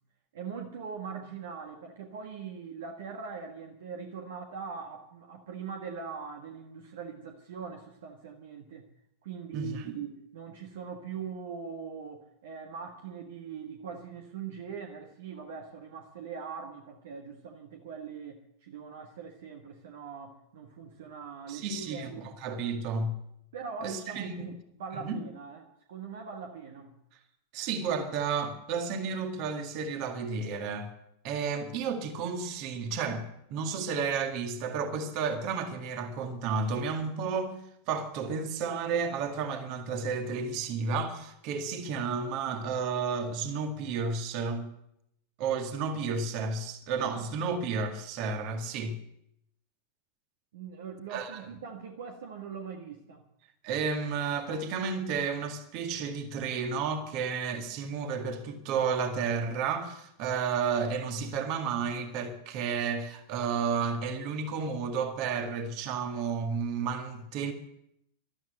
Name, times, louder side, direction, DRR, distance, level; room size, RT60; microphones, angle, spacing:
voice 1, 0.3-8.9 9.2-22.3 23.5-26.9 50.5-53.2, right 6 dB, 60° right, 1.5 m, -41 dB
voice 2, 9.5-10.0 21.5-23.1 23.8-24.5 24.9-25.2 27.5-30.9 31.2-37.5 37.9-44.7 45.4-49.0 51.1-51.4 53.6-67.5, right 5 dB, 45° right, 2.0 m, -32 dB
13.0 x 13.0 x 6.6 m
figure-of-eight pair, 90°, 0 cm